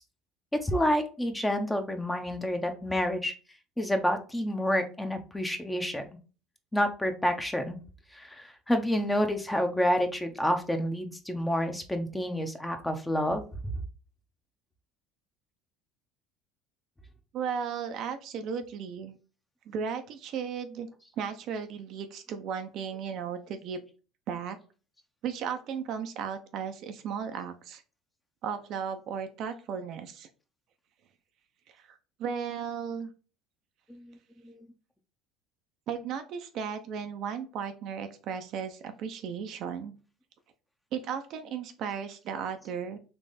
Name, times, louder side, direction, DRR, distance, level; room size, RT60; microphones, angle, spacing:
voice 1, 0.6-3.3 3.8-6.0 6.7-7.8 8.1-13.4 33.9-34.1 34.4-34.7, equal, 10° left, 6 dB, 0.9 m, -29 dB
voice 2, 17.3-19.2 19.7-20.9 21.2-23.9 24.3-24.6 25.2-27.8 28.4-30.3 31.7-33.1 35.9-39.9 40.9-43.0, right 7 dB, 60° right, 7 dB, 0.7 m, -35 dB
3.5 x 3.0 x 4.1 m, 0.35 s
hypercardioid pair, 80°, 0 cm